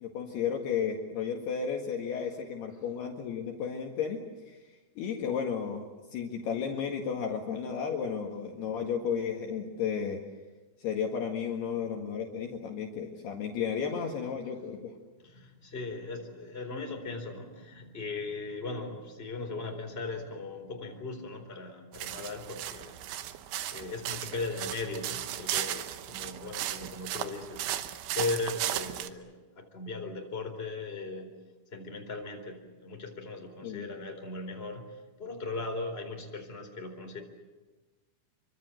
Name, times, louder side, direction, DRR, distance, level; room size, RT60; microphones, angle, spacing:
voice 1, 0.0-4.2 4.5-4.6 5.0-5.9 6.1-10.2 10.8-14.9 33.6-33.9, left 7 dB, 60° left, 1 dB, 3.4 m, -33 dB
voice 2, 13.9-14.5 15.2-23.0 23.7-27.6 28.1-31.3 31.7-37.2, left 3 dB, 15° left, 3 dB, 3.7 m, -38 dB
sound 1, 21.9-29.1, right 13 dB, 75° right, 3.3 m, -36 dB
27.5 x 24.5 x 7.9 m, 1.2 s
omnidirectional pair, 5.7 m